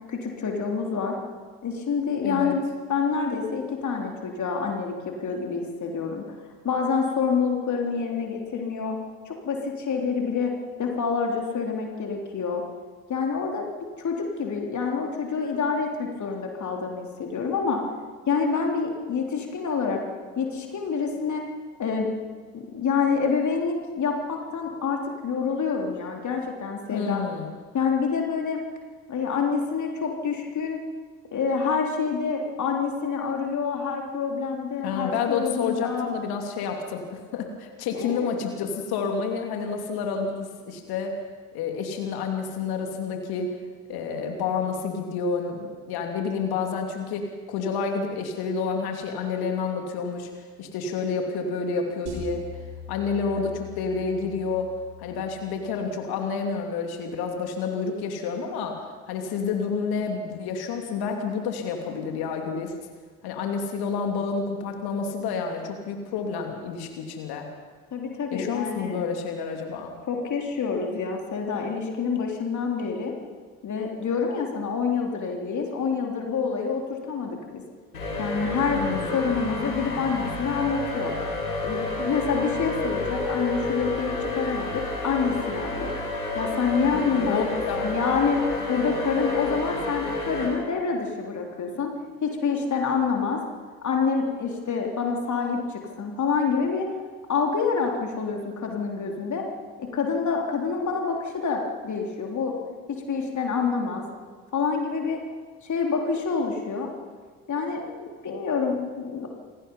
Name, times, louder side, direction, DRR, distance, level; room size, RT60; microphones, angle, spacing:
voice 1, 0.1-1.2 1.6-2.6 2.9-6.3 6.6-9.0 9.3-10.5 10.8-12.6 13.1-13.7 14.0-17.8 18.3-20.0 20.4-21.5 21.8-22.1 22.5-27.2 27.7-28.6 29.1-30.8 31.3-36.1 37.9-38.3 67.9-69.0 70.1-73.1 73.6-77.6 78.2-78.8 79.1-81.1 81.6-85.9 86.4-91.9 92.2-93.4 93.8-96.9 97.3-99.4 99.8-102.6 103.1-104.1 104.5-105.2 105.6-106.9 107.5-109.3, left 5 dB, 40° left, 1 dB, 3.5 m, -27 dB
voice 2, 2.2-2.6 26.9-27.5 34.8-41.1 41.5-43.5 43.9-52.4 52.9-54.7 55.0-62.7 63.2-67.5 68.3-69.9 78.7-79.3 86.9-88.0, left 5 dB, 60° left, 3 dB, 2.9 m, -29 dB
sound 1, 52.1-56.4, left 4 dB, 60° right, 5.6 m, -42 dB
sound 2, 77.9-90.5, left 2 dB, 85° left, 6.1 m, -30 dB
27.5 x 17.5 x 5.5 m, 1.5 s
figure-of-eight pair, 50°, 43 cm